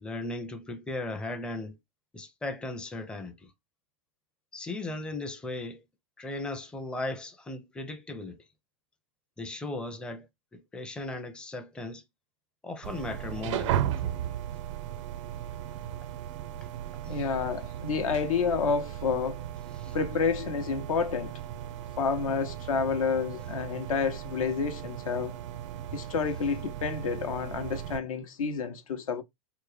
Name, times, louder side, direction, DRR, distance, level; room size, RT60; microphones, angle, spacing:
voice 1, 0.0-1.8 2.1-3.3 4.5-5.8 6.2-8.4 9.4-10.2 10.5-12.0 12.6-14.2 19.8-19.9, left 2 dB, 5° left, 0.5 m, -37 dB
sound 1, 12.8-28.0, right 11 dB, 60° right, 0.5 m, -36 dB
voice 2, 17.1-19.4 19.9-21.3 22.0-25.4 25.9-29.2, left 5 dB, 75° left, 0.7 m, -29 dB
3.6 x 2.1 x 3.2 m
hypercardioid pair, 105°, 18 cm